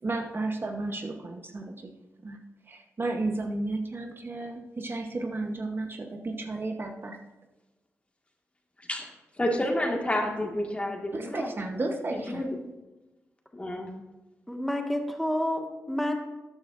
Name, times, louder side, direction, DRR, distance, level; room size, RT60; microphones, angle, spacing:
voice 1, 0.0-1.7 2.2-2.4 2.7-7.2 11.1-12.4, right 2 dB, 40° right, 4 dB, 0.9 m, -33 dB
voice 2, 9.4-11.5 12.1-12.5 13.5-13.9, left 1 dB, 20° left, 2 dB, 1.7 m, -29 dB
voice 3, 14.5-16.1, left 1 dB, ahead, 2 dB, 1.6 m, -29 dB
13.0 x 9.5 x 2.5 m, 1.1 s
cardioid pair, 70°, 6 cm